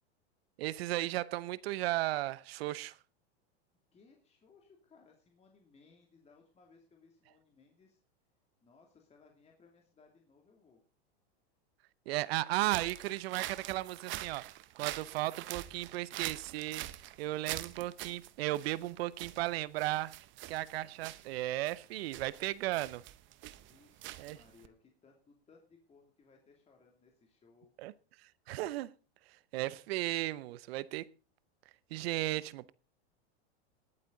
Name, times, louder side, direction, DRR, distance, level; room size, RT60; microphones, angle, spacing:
voice 1, 0.6-3.0 12.1-14.5 14.7-16.8 17.2-20.1 20.5-23.0 24.2-24.4 27.8-27.9 28.5-28.9 29.5-31.1 31.9-32.7, right 17 dB, 65° right, 0.8 m, -35 dB
voice 2, 3.9-8.0 8.6-10.8 23.5-27.7, left 4 dB, 20° left, 2.7 m, -64 dB
sound 1, 12.6-24.7, right 15 dB, 35° right, 0.9 m, -45 dB
20.0 x 8.6 x 3.9 m
hypercardioid pair, 125°, 32 cm